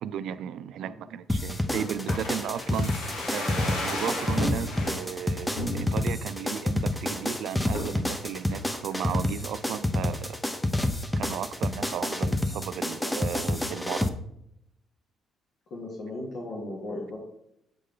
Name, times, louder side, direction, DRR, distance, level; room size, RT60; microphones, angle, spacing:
voice 1, 0.0-3.0 3.3-10.4 11.2-14.1, right 9 dB, 75° right, 15 dB, 0.3 m, -35 dB
sound 1, 1.3-14.1, left 1 dB, 10° left, 0.6 m, -28 dB
sound 2, 1.7-5.0 5.6-6.2 6.6-6.7 6.9-7.3 7.7-8.1 8.5-9.2 9.5-9.6, left 1 dB, 85° left, 1.4 m, -34 dB
voice 2, 15.7-17.2, left 2 dB, 60° left, -3 dB, 1.4 m, -36 dB
7.6 x 3.2 x 3.8 m, 0.78 s
cardioid pair, 95°, 0 cm